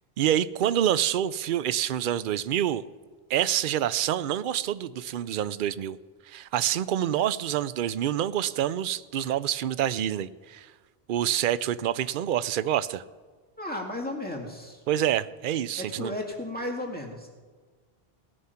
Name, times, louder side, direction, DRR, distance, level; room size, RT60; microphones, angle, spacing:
voice 1, 0.2-2.9 3.3-6.0 6.3-10.7 11.1-13.0 14.9-16.1, right 11 dB, 60° right, 16 dB, 0.7 m, -27 dB
voice 2, 13.6-14.8 15.8-17.3, left 1 dB, 10° left, 0 dB, 2.0 m, -34 dB
18.5 x 9.7 x 5.7 m, 1.4 s
omnidirectional pair, 1.1 m